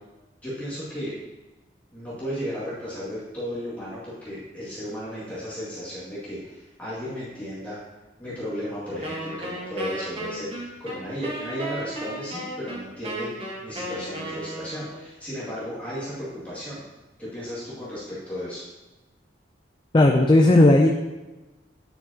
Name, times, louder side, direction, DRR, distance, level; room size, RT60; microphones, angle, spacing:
voice 1, 0.4-1.2 1.9-7.8 8.2-16.8 17.2-18.6, equal, 10° left, -11 dB, 2.1 m, -34 dB
Wind instrument woodwind instrument, 9.0-15.0, right 1 dB, 30° right, 1.2 m, -34 dB
voice 2, 19.9-20.9, left 2 dB, 25° left, 2 dB, 0.4 m, -15 dB
9.3 x 5.8 x 2.8 m, 1.1 s
head